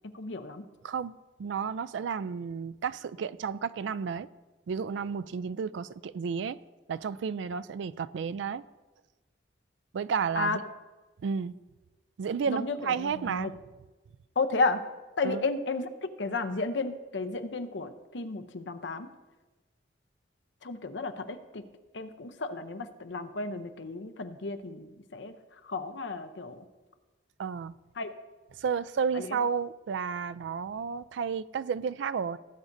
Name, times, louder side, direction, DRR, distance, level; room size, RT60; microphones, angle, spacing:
voice 1, 0.1-0.7 10.4-10.6 12.5-13.5 14.4-14.8 15.2-15.9 16.2-19.1 20.6-21.6 21.9-26.7 28.0-28.1 29.1-29.4, left 3 dB, 75° left, 0.7 m, -33 dB
voice 2, 1.4-4.3 4.7-6.6 6.9-8.6 9.9-10.6 11.2-11.6 12.2-13.5 15.2-15.4 27.4-27.7 28.6-32.4, right 6 dB, 80° right, 0.3 m, -32 dB
18.0 x 8.4 x 2.6 m
head